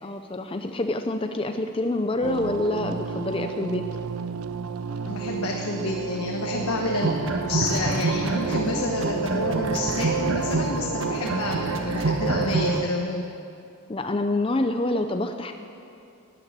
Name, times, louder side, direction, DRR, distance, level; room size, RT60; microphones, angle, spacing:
voice 1, 0.0-3.9 8.6-8.8 13.9-15.5, left 2 dB, 25° left, 6 dB, 0.5 m, -27 dB
sound 1, 2.2-12.9, right 7 dB, 80° right, 0.4 m, -31 dB
voice 2, 4.8-13.3, left 2 dB, 85° left, 0 dB, 1.3 m, -29 dB
sound 2, 7.0-8.7 9.0-12.7, right 2 dB, 60° right, 1.5 m, -27 dB
13.5 x 10.0 x 9.3 m, 2.6 s
head